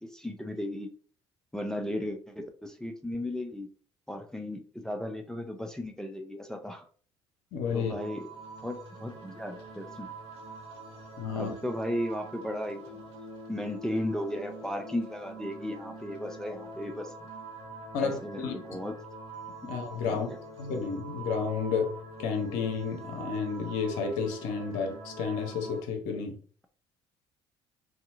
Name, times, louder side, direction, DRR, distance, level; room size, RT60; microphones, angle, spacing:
voice 1, 0.0-0.9 1.5-3.7 4.1-6.9 7.7-8.3 8.6-10.1 11.4-13.0 13.5-17.1 18.0-18.9 20.0-20.4, left 1 dB, 5° left, 5 dB, 0.4 m, -35 dB
voice 2, 7.5-7.9 11.2-11.5 17.9-18.5 19.6-20.3 20.6-26.4, left 5 dB, 70° left, 3 dB, 0.7 m, -31 dB
sound 1, 7.7-25.8, right 2 dB, 85° right, 0.9 m, -45 dB
2.7 x 2.3 x 2.6 m, 0.43 s
hypercardioid pair, 55°, 14 cm